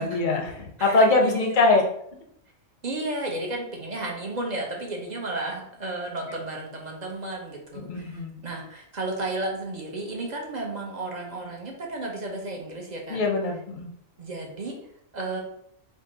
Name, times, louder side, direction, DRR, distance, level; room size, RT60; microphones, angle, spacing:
voice 1, 0.0-1.8 7.7-8.4 13.1-13.9, left 3 dB, 45° left, 2 dB, 0.7 m, -22 dB
voice 2, 0.8-1.7 2.8-13.2 14.2-14.7 15.1-15.4, right 2 dB, 40° right, 0 dB, 0.7 m, -33 dB
3.7 x 2.6 x 3.8 m, 0.71 s
omnidirectional pair, 1.4 m